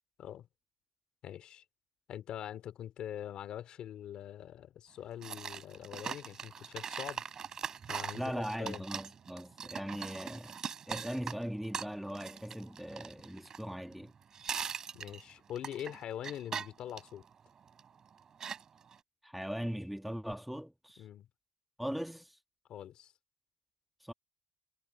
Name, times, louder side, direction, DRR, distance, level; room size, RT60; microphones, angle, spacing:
voice 1, 1.2-1.6 2.1-7.2 7.9-8.8 14.9-17.2 21.0-21.3 22.7-23.1, left 10 dB, 45° left, 2.6 m, -43 dB
sound 1, 5.2-14.1 14.3-17.9 18.4-19.0, right 7 dB, 30° right, 3.9 m, -41 dB
voice 2, 8.1-10.6 10.9-14.1 19.2-21.0 21.8-22.4 24.0-24.1, equal, ahead, 1.3 m, -39 dB
cardioid pair, 170°, 2 cm